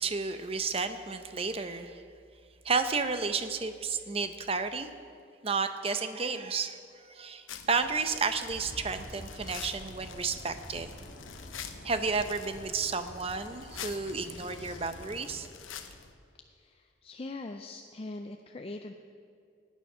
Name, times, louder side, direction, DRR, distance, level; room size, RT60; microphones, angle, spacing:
voice 1, 0.0-2.0 2.6-4.9 5.4-10.9 11.8-15.5, right 4 dB, 30° right, 9 dB, 0.6 m, -32 dB
sound 1, 7.5-16.1, left 7 dB, 90° left, 0.9 m, -47 dB
sound 2, 8.5-15.4, left 1 dB, 70° left, 2.0 m, -48 dB
voice 2, 16.5-18.9, left 2 dB, 30° left, 5 dB, 0.4 m, -42 dB
18.0 x 9.2 x 5.6 m, 2.3 s
head